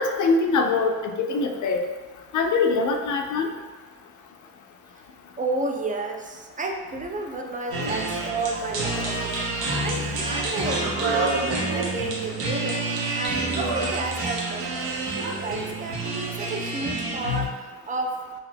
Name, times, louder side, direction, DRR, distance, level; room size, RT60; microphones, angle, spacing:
voice 1, 0.0-1.8 2.3-3.5, left 4 dB, 55° left, 4 dB, 0.5 m, -23 dB
voice 2, 5.4-9.1 9.8-12.9 13.1-14.7 15.4-18.2, right 3 dB, 20° right, 3 dB, 0.4 m, -31 dB
sound 1, 7.7-17.5, right 2 dB, 80° right, 0.7 m, -28 dB
2.4 x 2.3 x 3.3 m, 1.3 s
supercardioid pair, 55°, 37 cm